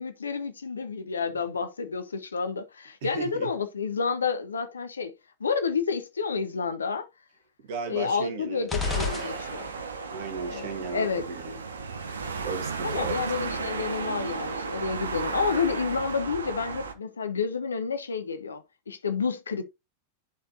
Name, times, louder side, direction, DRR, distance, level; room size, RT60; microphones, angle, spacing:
voice 1, 0.0-5.1 5.4-7.1 7.9-9.7 10.4-11.2 12.8-19.6, left 5 dB, 75° left, 0.9 m, -30 dB
voice 2, 3.0-3.5 7.6-8.7 10.1-11.6 12.4-13.2, right 4 dB, 50° right, 1.7 m, -35 dB
sound 1, 8.7-10.0, left 5 dB, 15° left, 2.0 m, -31 dB
sound 2, 8.8-16.9, right 5 dB, 70° right, 0.9 m, -34 dB
10.5 x 4.4 x 2.7 m
figure-of-eight pair, 90°, 0 cm